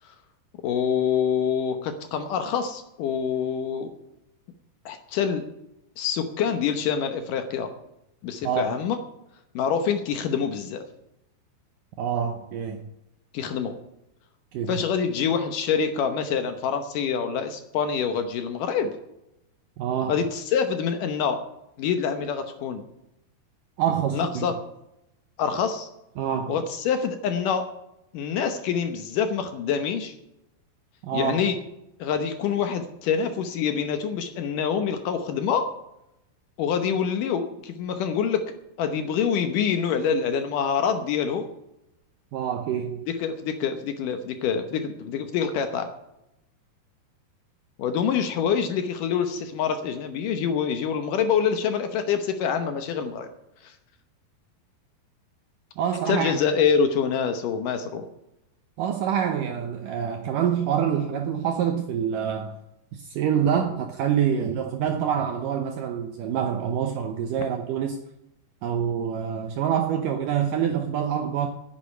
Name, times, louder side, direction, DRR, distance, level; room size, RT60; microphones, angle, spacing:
voice 1, 0.6-3.9 4.9-5.4 6.0-7.7 8.2-9.0 9.5-10.9 13.3-13.7 14.7-18.9 20.1-21.4 21.8-22.8 24.1-24.5 25.4-25.9 26.5-27.7 28.1-30.1 31.1-31.6 32.0-35.7 36.6-38.4 38.8-41.5 43.2-45.9 47.8-53.3 53.6-53.7 56.1-58.1, left 7 dB, 70° left, 7 dB, 2.1 m, -26 dB
voice 2, 8.4-8.8 12.0-12.8 14.5-14.8 19.8-20.2 23.8-24.5 26.2-26.6 31.0-31.4 42.3-43.0 55.8-56.3 58.8-62.6 62.9-68.0 68.6-71.5, right 8 dB, 75° right, 5 dB, 2.0 m, -26 dB
9.9 x 8.5 x 9.0 m, 0.85 s
omnidirectional pair, 4.8 m